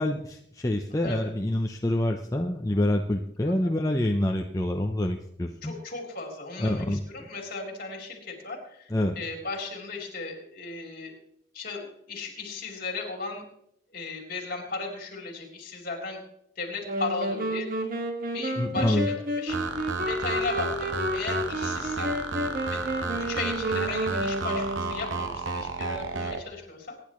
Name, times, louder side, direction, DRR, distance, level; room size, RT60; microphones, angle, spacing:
voice 1, 0.0-5.7 6.6-7.3 8.9-9.1 18.6-19.1, left 1 dB, 15° left, 2 dB, 0.7 m, -27 dB
voice 2, 5.6-11.1 11.5-13.4 13.9-16.2 16.6-17.7 18.3-19.6 20.0-22.2 22.7-26.9, left 3 dB, 45° left, 0 dB, 3.7 m, -36 dB
sound 1, 16.8-25.3, equal, 45° right, 1.8 m, -31 dB
sound 2, 19.5-26.4, right 4 dB, 75° right, 1.1 m, -32 dB
24.0 x 10.5 x 3.1 m, 0.73 s
head